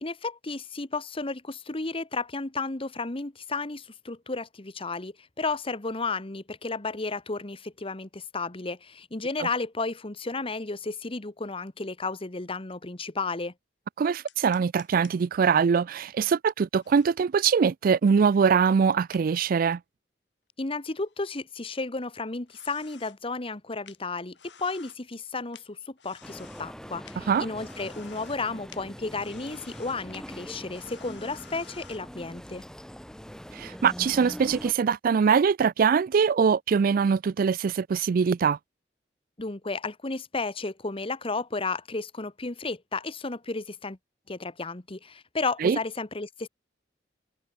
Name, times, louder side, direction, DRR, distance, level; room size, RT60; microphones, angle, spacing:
voice 1, 0.0-13.5 20.6-32.6 39.4-44.0 44.3-46.5, left 3 dB, 30° left, 1.3 m, -33 dB
voice 2, 14.0-19.8 27.3-27.5 33.5-38.6 45.6-45.8, right 6 dB, 50° right, 0.3 m, -23 dB
sound 1, 14.3-15.1 16.7-17.1 19.1-19.2 20.7-21.4 22.5-23.2 23.5-23.6 23.9-24.0 24.3-25.0 25.5-26.7 27.0-27.2 27.5-28.4 28.7-28.8 29.1-30.2 30.7-32.0, left 8 dB, 80° left, 4.1 m, -52 dB
sound 2, 26.2-34.7, equal, 5° left, 1.6 m, -42 dB
head